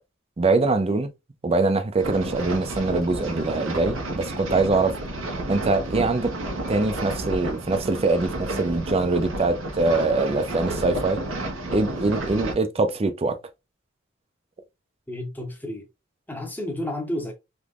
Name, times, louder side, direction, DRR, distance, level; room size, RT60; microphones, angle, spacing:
voice 1, 0.4-1.1 1.4-5.0 5.5-6.3 6.7-11.2 11.7-13.4, right 3 dB, 30° right, 0.5 m, -23 dB
sound 1, 2.0-12.5, right 1 dB, 90° right, 1.0 m, -31 dB
voice 2, 15.1-15.9 16.3-17.3, left 1 dB, 10° left, 0.8 m, -31 dB
3.4 x 3.0 x 2.4 m
head